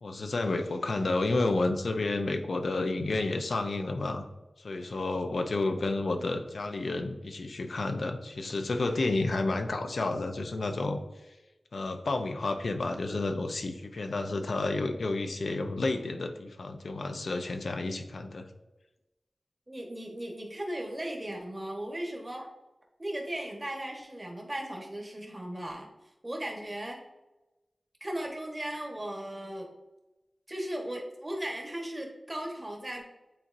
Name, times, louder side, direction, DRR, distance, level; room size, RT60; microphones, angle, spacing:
voice 1, 0.0-4.3 4.6-11.0 11.7-18.5, left 2 dB, 80° left, 6 dB, 0.6 m, -30 dB
voice 2, 19.7-22.5 23.0-25.9 26.2-27.0 28.0-29.7 30.5-33.0, right 1 dB, 25° right, 0 dB, 1.3 m, -37 dB
8.9 x 4.1 x 2.6 m, 1.0 s
wide cardioid pair, 80°, 0 cm